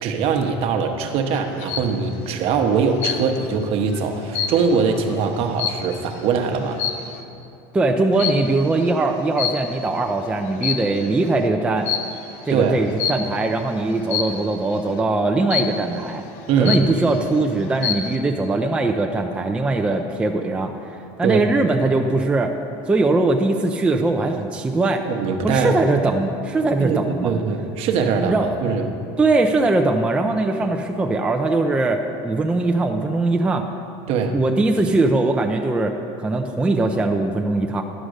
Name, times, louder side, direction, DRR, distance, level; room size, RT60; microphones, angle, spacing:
voice 1, 0.0-6.8 12.5-12.8 16.5-16.8 21.2-21.4 25.1-25.8 26.8-28.9 34.1-34.4, right 5 dB, 50° right, 5 dB, 0.9 m, -22 dB
sound 1, 1.3-2.0 3.0-3.5 3.9-6.2 6.7-7.2 8.2-8.6 9.4-10.0 10.5-11.2 11.9-12.2 13.0-13.4 14.1-14.5 15.5-16.0 16.4-16.5 16.7-17.3 17.6-18.2, left 8 dB, 65° left, 0.8 m, -27 dB
voice 2, 7.7-11.9 12.4-16.2 16.6-22.5 22.9-25.1 25.4-27.4 28.2-28.5 29.2-33.7 34.3-37.8, right 2 dB, 10° right, 3 dB, 0.4 m, -21 dB
11.0 x 5.0 x 6.4 m, 2.8 s
cardioid pair, 145°, 13 cm